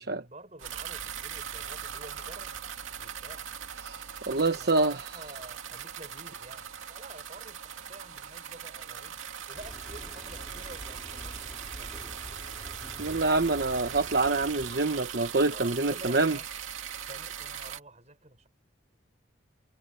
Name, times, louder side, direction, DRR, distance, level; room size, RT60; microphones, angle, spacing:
voice 1, 0.0-2.6 2.9-3.5 4.3-9.2 9.5-12.2 15.5-16.5 17.0-18.5, right 2 dB, 35° right, 5.4 m, -49 dB
sound 1, 0.6-17.8, right 8 dB, 85° right, 2.4 m, -40 dB
voice 2, 3.8-5.0 13.0-16.4, right 3 dB, 55° right, 1.1 m, -26 dB
sound 2, 9.6-14.8, equal, ahead, 6.5 m, -45 dB
head